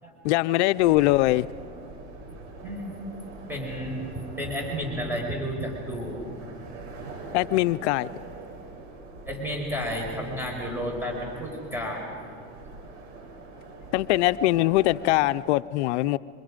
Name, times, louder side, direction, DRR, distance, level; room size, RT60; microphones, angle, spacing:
voice 1, 0.2-1.5 7.3-8.1 13.9-16.2, left 17 dB, 75° left, 15 dB, 0.6 m, -22 dB
sound 1, 0.8-15.4, right 2 dB, 60° right, 7.7 m, -43 dB
voice 2, 3.5-6.2 7.0-7.1 9.3-12.0, equal, 5° right, 0 dB, 5.4 m, -32 dB
26.0 x 26.0 x 5.1 m, 2.3 s
supercardioid pair, 100°, 34 cm